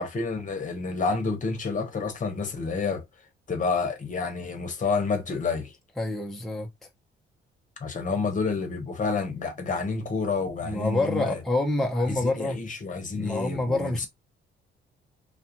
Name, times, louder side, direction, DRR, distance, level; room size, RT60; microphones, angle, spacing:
voice 1, 0.0-3.0 3.5-5.7 7.8-11.4 12.1-14.1, left 4 dB, 40° left, 0.9 m, -29 dB
voice 2, 6.0-6.7 10.6-12.6 13.1-14.1, left 2 dB, ahead, 0.7 m, -27 dB
2.3 x 2.3 x 2.8 m
cardioid pair, 90°, 20 cm